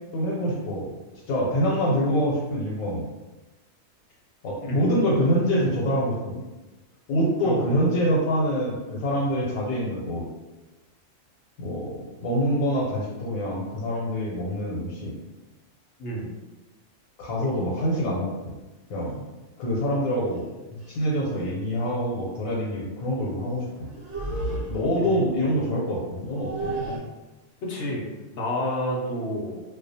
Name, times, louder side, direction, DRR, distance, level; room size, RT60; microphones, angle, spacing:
voice 1, 0.1-0.9 1.3-3.0 4.4-6.4 7.1-10.3 11.6-15.1 17.2-18.5 18.9-19.2 19.6-20.4 20.7-23.6 24.7-26.7, equal, 90° left, -4 dB, 1.0 m, -25 dB
voice 2, 16.0-16.3 25.0-25.6 27.6-28.0 28.3-29.6, equal, 65° left, -2 dB, 0.8 m, -30 dB
sound 1, 18.9-19.1 20.3-20.4 20.8-21.0 21.3-21.5 23.8-25.1 26.1-27.0, right 2 dB, 65° right, 0.9 m, -32 dB
2.3 x 2.1 x 2.6 m, 1.1 s
omnidirectional pair, 1.4 m